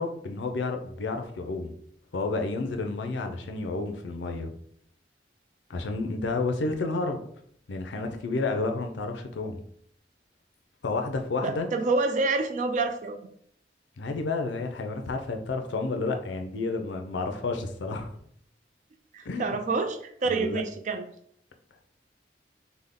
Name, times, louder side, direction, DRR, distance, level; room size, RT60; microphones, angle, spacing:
voice 1, 0.0-1.7 2.1-4.5 5.7-7.2 7.7-9.6 10.8-11.7 14.0-18.1 19.3-19.6 20.3-20.6, left 3 dB, 90° left, 5 dB, 0.5 m, -30 dB
voice 2, 11.4-13.2 19.1-21.1, right 3 dB, 45° right, 8 dB, 0.4 m, -27 dB
3.4 x 2.1 x 3.6 m, 0.66 s
head